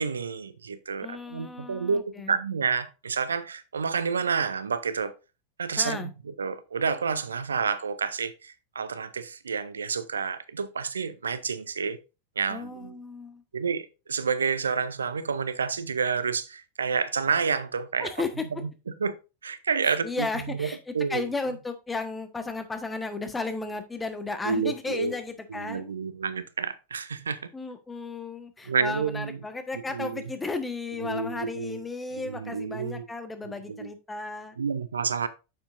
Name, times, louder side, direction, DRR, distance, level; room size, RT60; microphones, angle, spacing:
voice 1, 0.0-5.1 5.6-12.0 12.4-12.9 13.5-18.1 18.6-19.1 19.4-21.2 24.4-25.1 25.5-27.4 28.7-29.4 29.9-30.3 31.0-31.8 32.1-33.0 33.7-33.9 34.6-35.3, right 5 dB, 70° right, 0.6 m, -29 dB
voice 2, 1.0-2.3 5.8-6.1 12.5-13.4 18.0-18.4 19.8-25.9 27.5-34.5, left 3 dB, 10° left, 1.3 m, -34 dB
9.6 x 7.0 x 2.6 m
figure-of-eight pair, 90°, 0 cm